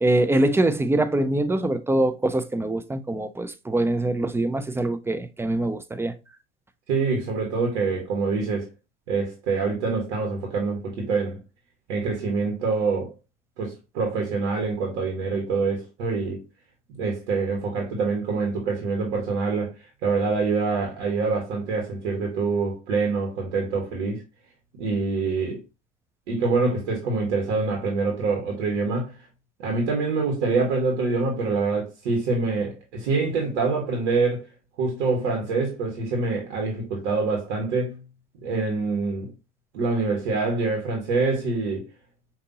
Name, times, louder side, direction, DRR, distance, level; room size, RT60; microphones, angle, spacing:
voice 1, 0.0-6.1, right 1 dB, 10° right, 0.3 m, -23 dB
voice 2, 6.9-8.7 9.1-11.4 11.9-13.1 13.6-16.4 16.9-19.7 20.0-24.2 24.8-25.6 26.3-29.1 29.6-34.5 34.8-38.0 38.4-39.3 39.7-41.9, right 4 dB, 75° right, 1.4 m, -25 dB
5.2 x 2.8 x 2.7 m
hypercardioid pair, 75°, 34 cm